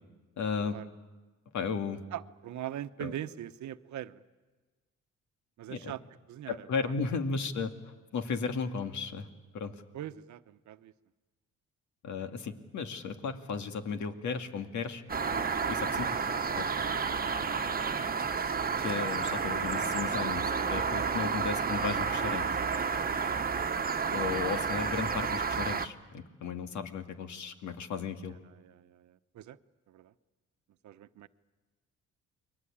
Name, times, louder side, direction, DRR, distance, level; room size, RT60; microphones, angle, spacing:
voice 1, 0.4-0.8 1.5-2.0 3.0-3.1 5.7-5.8 6.5-7.7 8.1-9.3 9.5-9.7 12.0-15.0 15.7-16.3 16.5-16.7 18.8-22.5 24.1-28.4, left 5 dB, 70° left, 6 dB, 2.4 m, -35 dB
voice 2, 2.1-4.2 5.6-6.0 6.3-6.9 9.9-10.9 28.3-29.6 29.9-30.1 30.8-31.3, right 12 dB, 70° right, 12 dB, 1.0 m, -42 dB
sound 1, 15.1-25.9, right 5 dB, 30° right, 1.3 m, -31 dB
29.5 x 22.5 x 8.8 m, 1.3 s
cardioid pair, 90°, 30 cm